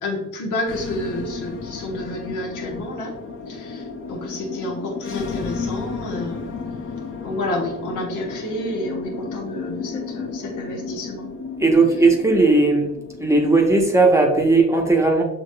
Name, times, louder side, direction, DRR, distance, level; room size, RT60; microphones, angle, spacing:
voice 1, 0.0-3.2 3.5-6.5 7.2-11.3, left 1 dB, 85° left, 0 dB, 1.1 m, -29 dB
sound 1, 0.7-14.6, left 5 dB, 40° left, 0.7 m, -33 dB
voice 2, 11.6-12.9 13.2-15.2, right 3 dB, 10° right, 1 dB, 0.8 m, -16 dB
6.7 x 3.0 x 2.2 m, 0.94 s
cardioid pair, 90°, 30 cm